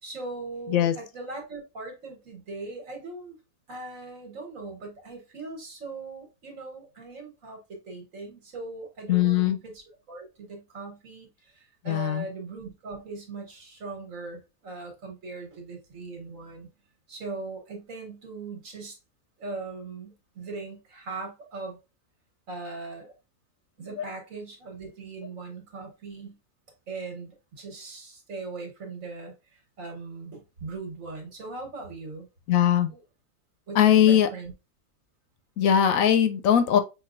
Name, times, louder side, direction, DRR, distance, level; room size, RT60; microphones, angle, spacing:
voice 1, 0.0-3.4 3.7-16.7 17.1-19.0 19.4-21.8 22.5-23.1 23.8-26.4 26.9-32.3 32.9-33.0 33.7-34.5, right 3 dB, 65° right, 1.7 m, -40 dB
voice 2, 9.1-9.6 11.8-12.3 24.0-24.1 32.5-32.9 33.7-34.3 35.6-36.8, left 9 dB, 75° left, 1.0 m, -20 dB
5.9 x 2.9 x 2.4 m
omnidirectional pair, 1.5 m